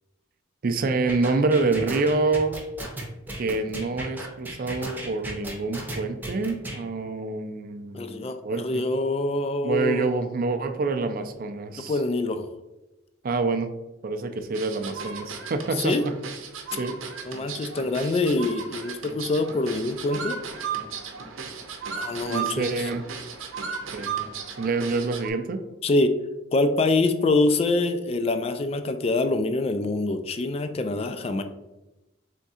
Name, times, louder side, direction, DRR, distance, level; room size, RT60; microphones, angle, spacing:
voice 1, 0.6-2.6 3.4-8.8 9.6-12.0 13.2-13.7 14.0-16.1 16.8-17.0 22.3-23.0 23.9-24.2 24.6-25.6, right 3 dB, 45° right, 8 dB, 0.4 m, -27 dB
sound 1, 1.1-6.8, right 1 dB, 10° right, 0.7 m, -35 dB
voice 2, 7.9-10.1 11.8-12.5 15.8-16.0 17.3-20.4 22.0-22.9 25.8-26.1 26.5-31.4, left 2 dB, 30° left, 9 dB, 0.3 m, -25 dB
sound 2, 14.5-25.3, right 6 dB, 85° right, 0.7 m, -35 dB
3.5 x 3.5 x 4.1 m, 1.0 s
head